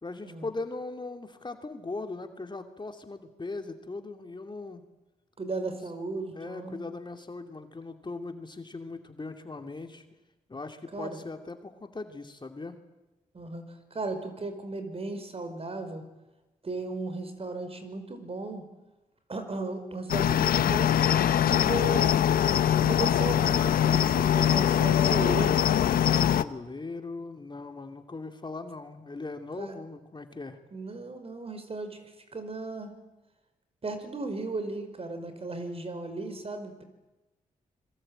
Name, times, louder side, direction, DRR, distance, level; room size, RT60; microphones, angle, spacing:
voice 1, 0.0-4.8 6.3-10.0 10.5-12.8 26.1-30.6, left 3 dB, 30° left, 6 dB, 2.7 m, -39 dB
voice 2, 5.4-6.8 10.9-11.2 13.3-13.6 13.9-16.0 16.6-18.7 19.3-22.2 22.8-25.6 29.6-29.8 30.7-32.9 33.8-36.8, right 3 dB, 40° right, 8 dB, 5.2 m, -35 dB
Cricket, 20.1-26.4, left 10 dB, 85° left, 0.9 m, -23 dB
25.5 x 23.0 x 9.0 m, 1.1 s
cardioid pair, 60°, 15 cm